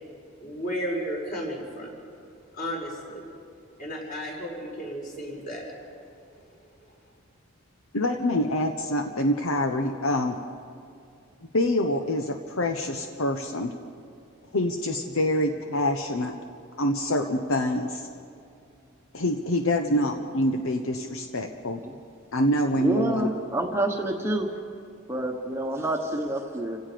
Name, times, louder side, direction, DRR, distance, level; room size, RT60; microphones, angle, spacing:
voice 1, 0.4-1.9 2.6-3.2 3.8-5.7, equal, 40° left, -3 dB, 5.9 m, -33 dB
voice 2, 7.9-10.4 11.5-13.7 14.5-16.3 16.8-18.1 19.1-21.8 22.3-23.3, left 1 dB, 75° left, 5 dB, 1.0 m, -26 dB
voice 3, 22.8-24.5 25.1-26.8, right 1 dB, 10° right, 1 dB, 1.1 m, -28 dB
30.0 x 17.0 x 5.2 m, 2.5 s
head